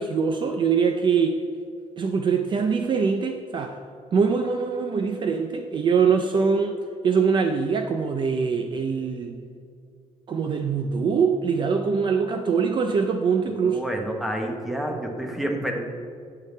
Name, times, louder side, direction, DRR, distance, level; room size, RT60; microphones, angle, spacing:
voice 1, 0.0-1.4 2.0-3.8 4.1-9.4 10.3-13.8, right 5 dB, 40° right, 5 dB, 0.4 m, -23 dB
voice 2, 13.6-15.8, right 1 dB, ahead, 1 dB, 0.9 m, -29 dB
9.1 x 6.6 x 3.2 m, 2.3 s
cardioid pair, 145°, 13 cm